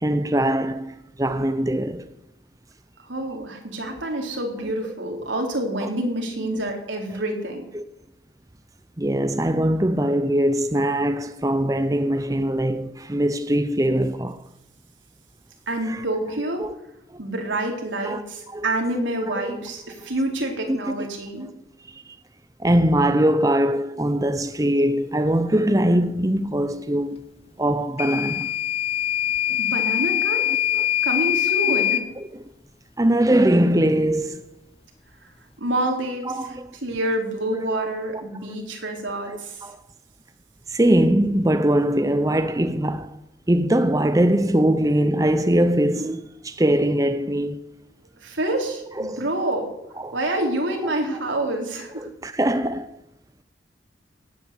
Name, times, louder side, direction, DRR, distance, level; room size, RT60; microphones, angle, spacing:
voice 1, 0.0-2.1 3.9-4.0 5.8-5.9 7.1-7.2 7.7-7.8 9.0-14.4 15.9-16.0 16.6-16.7 18.0-18.2 18.5-18.7 19.4-19.6 20.7-20.8 21.4-21.5 21.8-22.0 22.6-27.2 27.6-28.5 30.7-30.9 32.2-32.3 33.0-34.5 36.3-36.7 37.5-37.7 38.1-38.2 39.6-39.8 40.7-43.2 43.5-47.6 49.0-49.3 50.0-50.2 50.8-51.2 52.0-53.0, right 1 dB, 20° right, 0.6 m, -22 dB
voice 2, 3.0-7.7 15.7-16.6 17.2-21.5 29.6-30.4 31.0-32.0 35.6-39.6 48.2-49.7 50.1-52.1, right 1 dB, 85° right, 3.7 m, -27 dB
Microwave oven / Alarm, 28.0-32.1, left 11 dB, 30° left, 0.8 m, -23 dB
16.5 x 9.1 x 8.3 m
head